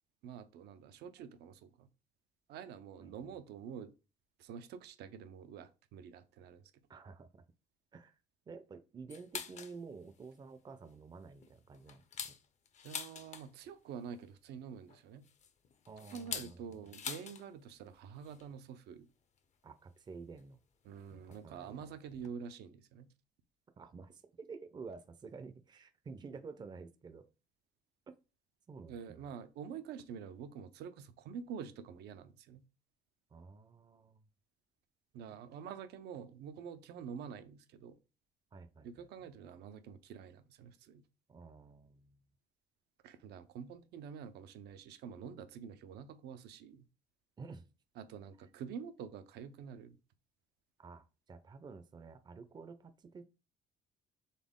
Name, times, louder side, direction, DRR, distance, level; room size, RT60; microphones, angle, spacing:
voice 1, 0.2-1.9 2.5-3.9 4.4-6.7 12.8-15.2 16.1-19.1 20.8-23.1 28.9-32.6 35.1-38.0 38.8-41.0 43.0-46.9 48.0-50.0, right 7 dB, 75° right, 0.6 m, -47 dB
voice 2, 6.9-7.3 7.9-8.2 8.5-12.4 15.9-16.9 19.6-20.6 21.1-22.3 23.8-27.3 28.7-29.3 33.3-34.2 38.5-39.1 41.3-42.2 47.4-47.7 50.8-53.2, right 4 dB, 25° right, 0.5 m, -51 dB
sound 1, 9.1-9.8 10.2-10.3 10.7-10.9 11.4-13.7 14.9-17.5 17.7-17.8 18.1-18.4 19.4-19.5 20.4-20.5 21.3-21.5 21.8-21.9 22.1-22.3, left 7 dB, 45° left, 0.6 m, -45 dB
4.1 x 3.5 x 3.6 m
cardioid pair, 110°, 17 cm